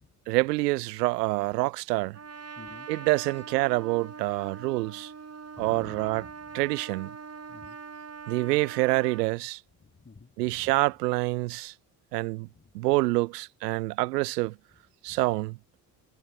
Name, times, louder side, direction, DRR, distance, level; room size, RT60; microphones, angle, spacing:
voice 1, 0.3-2.2 2.9-5.1 5.6-6.2 6.5-7.1 8.3-9.6 10.4-11.7 12.1-12.5 12.7-14.5 15.0-15.6, right 21 dB, 85° right, 0.5 m, -27 dB
Trumpet, 2.1-9.3, right 5 dB, 30° right, 5.7 m, -43 dB
voice 2, 2.6-2.9 5.5-6.7 7.5-7.8 9.8-11.0 12.5-12.9 15.1-15.4, left 4 dB, 25° left, 4.6 m, -51 dB
hypercardioid pair, 55°, 47 cm